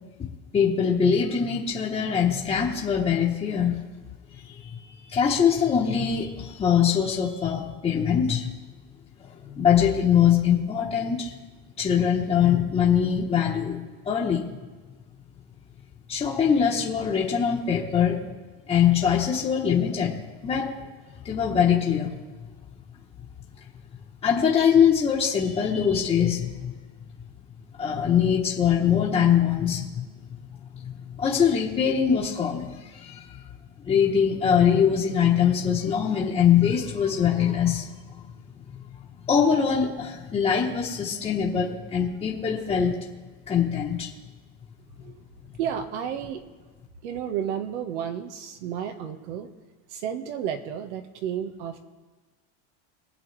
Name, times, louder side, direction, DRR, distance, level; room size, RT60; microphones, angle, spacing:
voice 1, 0.2-3.8 4.3-8.5 9.2-11.3 11.8-14.4 16.1-18.2 18.7-20.2 20.4-20.8 21.2-22.1 24.2-26.7 27.8-30.0 30.8-30.9 31.2-33.4 33.8-38.2 39.3-43.0 43.5-44.1, left 8 dB, 20° left, -5 dB, 1.3 m, -23 dB
voice 2, 45.6-46.4 47.0-49.5 49.9-51.8, right 9 dB, 85° right, 6 dB, 1.5 m, -32 dB
23.0 x 8.2 x 3.4 m, 1.3 s
cardioid pair, 160°, 34 cm